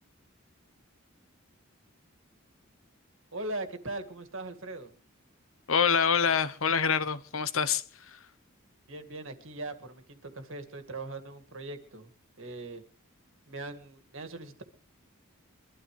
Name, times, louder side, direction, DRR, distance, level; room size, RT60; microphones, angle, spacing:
voice 1, 3.3-4.9 8.9-12.1 12.4-12.8 13.5-14.6, right 2 dB, 65° right, 2.1 m, -40 dB
voice 2, 5.7-8.2, left 6 dB, 70° left, 0.9 m, -26 dB
23.0 x 13.0 x 3.3 m
head